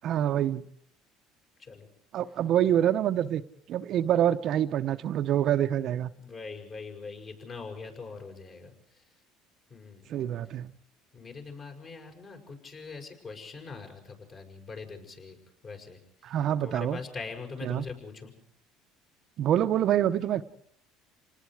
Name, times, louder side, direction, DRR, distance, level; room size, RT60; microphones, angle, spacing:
voice 1, 0.0-0.6 2.1-3.4 3.7-6.1 10.1-10.7 16.2-17.0 17.6-17.8 19.4-20.4, right 11 dB, 55° right, 9 dB, 0.8 m, -26 dB
voice 2, 6.2-8.7 9.7-10.1 11.1-15.4 15.6-16.0 16.6-18.3, left 4 dB, 40° left, 3 dB, 6.5 m, -42 dB
28.5 x 19.5 x 4.9 m, 0.66 s
supercardioid pair, 105°, 0 cm